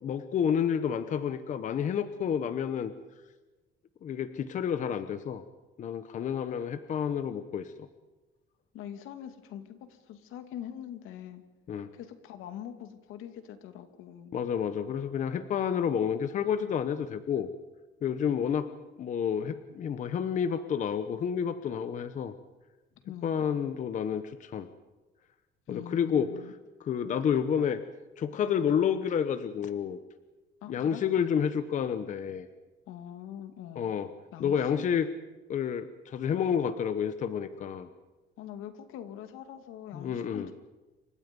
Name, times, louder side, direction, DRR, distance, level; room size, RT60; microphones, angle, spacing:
voice 1, 0.0-2.9 4.0-5.4 5.8-7.7 11.7-11.9 14.3-17.5 18.0-18.7 19.0-22.3 23.2-24.7 25.7-26.3 26.8-27.8 28.2-30.0 30.7-32.5 33.8-34.1 34.4-35.1 35.5-37.9 39.9-40.5, left 8 dB, 35° left, 11 dB, 0.9 m, -29 dB
voice 2, 8.7-11.4 11.9-14.3 23.0-23.4 25.7-26.5 30.6-31.5 32.9-33.9 34.3-34.8 38.4-40.5, left 10 dB, 80° left, 8 dB, 2.4 m, -43 dB
28.0 x 25.0 x 5.4 m, 1.1 s
cardioid pair, 175°, 21 cm